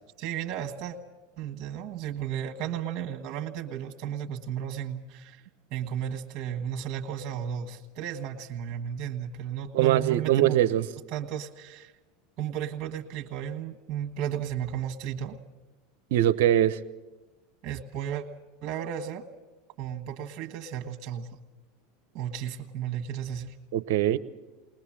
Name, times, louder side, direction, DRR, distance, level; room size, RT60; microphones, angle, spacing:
voice 1, 0.2-1.0 1.4-5.4 5.7-10.6 11.1-11.9 12.4-15.4 17.6-18.2 18.6-19.2 19.8-21.3 22.1-23.5, right 9 dB, 50° right, 4 dB, 1.6 m, -34 dB
voice 2, 9.7-10.8 16.1-16.8 23.7-24.2, right 12 dB, 70° right, 15 dB, 0.8 m, -22 dB
21.0 x 20.0 x 7.5 m, 1.1 s
hypercardioid pair, 85°, 0 cm